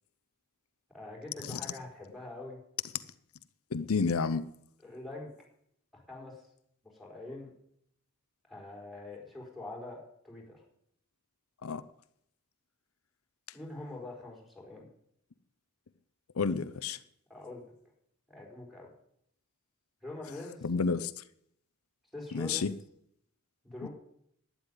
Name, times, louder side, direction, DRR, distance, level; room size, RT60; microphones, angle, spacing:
voice 1, 0.9-2.6 4.8-5.3 5.9-6.5 6.8-7.5 8.5-10.6 13.5-14.9 17.3-17.6 18.3-18.9 20.0-20.7 22.1-22.6 23.6-23.9, left 2 dB, ahead, 4.4 m, -44 dB
voice 2, 3.7-4.5 11.6-11.8 16.4-17.0 20.6-21.2 22.3-22.7 23.8-23.9, left 4 dB, 80° left, 0.7 m, -30 dB
11.5 x 9.6 x 9.9 m
head